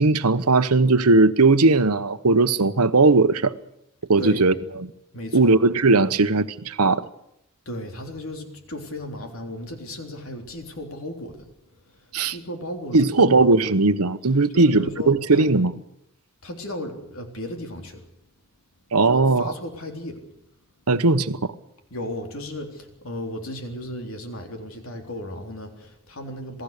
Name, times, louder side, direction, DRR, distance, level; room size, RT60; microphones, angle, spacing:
voice 1, 0.0-3.5 4.1-4.9 5.3-7.1 12.1-12.4 12.9-15.7 18.9-19.5 20.9-21.5, right 3 dB, 90° right, 1.1 m, -18 dB
voice 2, 4.2-4.6 5.1-5.6 7.7-11.5 12.3-13.4 14.5-15.5 16.4-18.0 19.0-20.2 21.9-26.6, left 1 dB, 65° left, 3.6 m, -35 dB
27.5 x 18.0 x 6.7 m
head